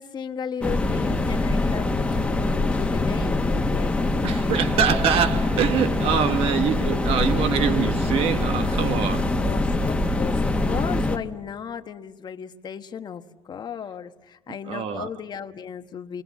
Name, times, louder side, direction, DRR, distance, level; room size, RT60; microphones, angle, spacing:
voice 1, 0.0-4.7 9.4-13.2 13.5-16.2, left 7 dB, 45° left, 1.2 m, -35 dB
sound 1, 0.6-11.2, left 2 dB, 10° left, 1.5 m, -24 dB
voice 2, 4.2-9.4 14.7-15.1, right 8 dB, 70° right, 1.4 m, -24 dB
28.0 x 22.0 x 7.3 m
cardioid pair, 110°, 10 cm